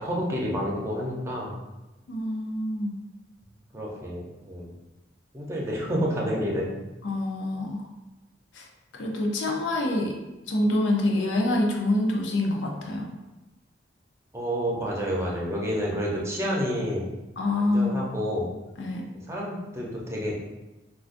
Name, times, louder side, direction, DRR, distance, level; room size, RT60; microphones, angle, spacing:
voice 1, 0.0-1.5 3.7-4.7 5.3-6.7 14.3-17.1 17.6-18.5 19.3-20.3, equal, 15° right, -3 dB, 0.6 m, -29 dB
voice 2, 2.1-2.9 7.0-7.8 8.5-8.7 8.9-10.2 10.5-13.1 17.4-18.0 18.8-19.0, left 1 dB, 85° left, 0 dB, 0.5 m, -26 dB
3.8 x 2.3 x 2.5 m, 1.0 s
head